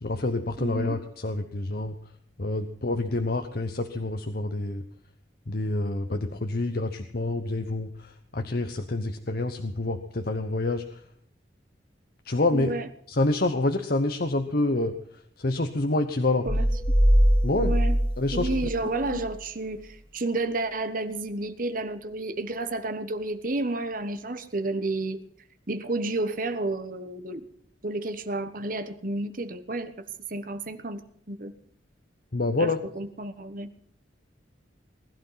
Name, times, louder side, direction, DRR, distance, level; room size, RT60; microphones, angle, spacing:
voice 1, 0.0-2.0 2.4-4.9 5.5-11.0 12.2-12.7 13.1-16.5 17.4-17.7 18.2-18.7 19.1-19.2 32.3-32.8, left 2 dB, 55° left, 7 dB, 1.0 m, -27 dB
voice 2, 0.6-1.0 12.5-12.9 16.4-16.6 17.5-18.0 18.3-25.2 25.7-27.4 27.8-29.9 30.3-31.0 31.3-31.5 32.6-32.7 33.0-33.7, right 2 dB, 50° right, 10 dB, 1.2 m, -31 dB
sound 1, 16.5-19.3, equal, 5° left, 2.1 m, -22 dB
19.5 x 12.0 x 5.7 m, 0.64 s
head